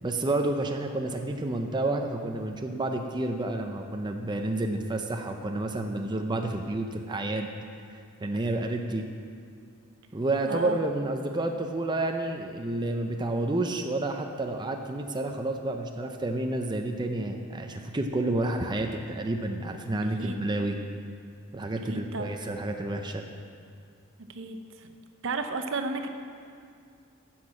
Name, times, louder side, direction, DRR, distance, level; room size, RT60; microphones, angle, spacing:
voice 1, 0.0-7.5 7.9-9.1 10.1-20.8 21.5-23.2, right 2 dB, 20° right, 4 dB, 0.5 m, -30 dB
voice 2, 10.4-10.8 20.0-20.4 21.9-22.4 24.3-24.9 25.2-26.1, right 3 dB, 65° right, 7 dB, 0.8 m, -33 dB
10.0 x 6.1 x 7.4 m, 2.3 s
head